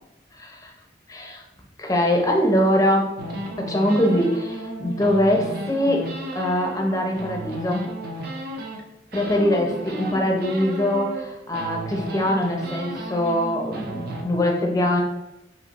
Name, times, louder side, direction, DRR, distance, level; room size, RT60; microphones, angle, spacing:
voice 1, 0.3-0.7 1.1-1.4 1.8-3.2 3.6-7.9 9.1-15.0, left 1 dB, 20° left, 1 dB, 0.7 m, -23 dB
sound 1, 3.2-8.8 9.1-11.2 11.5-14.2, right 1 dB, 55° right, 0.6 m, -33 dB
5.1 x 2.9 x 3.0 m, 0.92 s
head